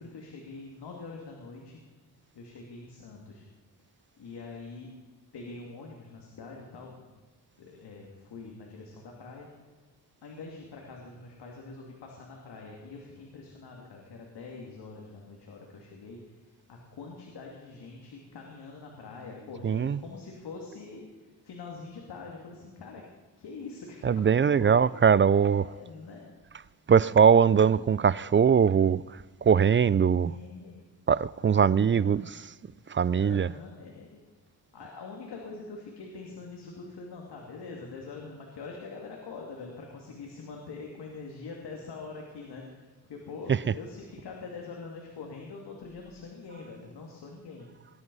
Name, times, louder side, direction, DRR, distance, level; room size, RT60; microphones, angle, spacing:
voice 1, 0.0-1.8 2.3-3.5 4.2-4.9 5.3-7.1 7.6-9.5 10.2-16.4 16.7-23.0 23.4-24.8 25.2-26.3 30.2-30.8 31.5-32.3 33.1-34.2 34.7-47.7, left 4 dB, 90° left, 2.6 m, -44 dB
voice 2, 19.6-20.0 24.0-25.6 26.9-29.0 29.4-30.3 31.1-32.2 32.9-33.5, right 7 dB, 30° right, 0.4 m, -21 dB
20.5 x 11.5 x 5.5 m
cardioid pair, 95°, 39 cm